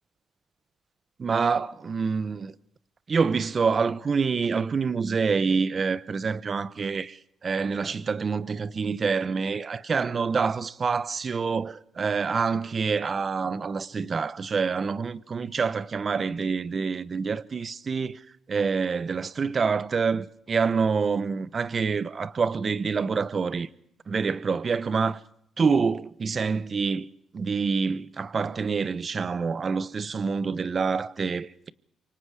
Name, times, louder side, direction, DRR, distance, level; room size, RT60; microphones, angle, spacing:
voice 1, 1.2-2.5 3.1-18.2 18.5-23.7 24.1-25.2 25.6-27.1 27.3-31.7, right 5 dB, 40° right, 0.9 m, -26 dB
28.0 x 24.5 x 4.9 m
cardioid pair, 90°, 0 cm